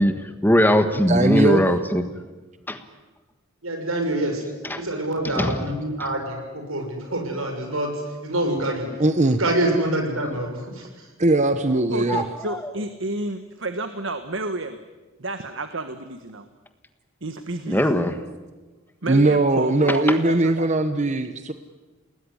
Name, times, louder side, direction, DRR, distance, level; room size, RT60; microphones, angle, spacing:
voice 1, 0.0-2.0 2.7-2.8 4.7-4.8 5.2-5.6 12.1-12.6 17.7-18.1, equal, 10° left, 8 dB, 1.5 m, -20 dB
voice 2, 1.1-1.6 9.0-9.4 11.2-12.2 19.1-21.5, right 2 dB, 35° right, 9 dB, 1.1 m, -20 dB
voice 3, 3.6-4.4 4.7-8.9 9.4-11.1, right 1 dB, 90° right, 4 dB, 6.7 m, -26 dB
voice 4, 11.9-14.8 15.2-16.5 17.2-17.8 19.0-20.7, right 2 dB, 65° right, 9 dB, 1.5 m, -31 dB
29.0 x 19.5 x 10.0 m, 1.2 s
head